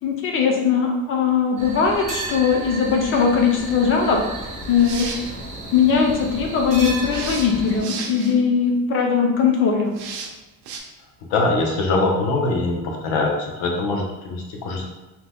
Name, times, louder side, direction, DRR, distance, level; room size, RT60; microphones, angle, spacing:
voice 1, 0.0-4.2 4.7-5.1 5.7-9.9, left 6 dB, 35° left, 1 dB, 0.5 m, -20 dB
sound 1, 1.6-7.8, right 1 dB, 20° right, 0.5 m, -33 dB
sound 2, 4.6-5.3 7.1-8.3 9.9-10.3 10.6-10.8, right 5 dB, 90° right, 0.6 m, -33 dB
voice 2, 11.3-14.9, left 2 dB, 70° left, 1 dB, 0.8 m, -22 dB
2.8 x 2.2 x 3.4 m, 1.1 s
cardioid pair, 165°, 37 cm